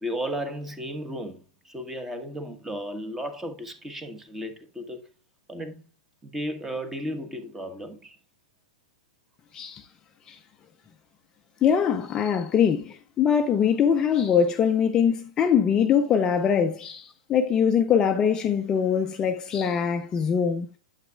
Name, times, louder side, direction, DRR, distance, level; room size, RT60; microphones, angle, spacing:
voice 1, 0.0-5.1 5.5-5.7 6.2-8.2, equal, 10° right, 1.2 m, -34 dB
voice 2, 9.5-9.9 10.3-10.4 11.6-20.8, left 7 dB, 20° left, 0.6 m, -23 dB
9.0 x 8.2 x 2.3 m
hypercardioid pair, 140°, 3 cm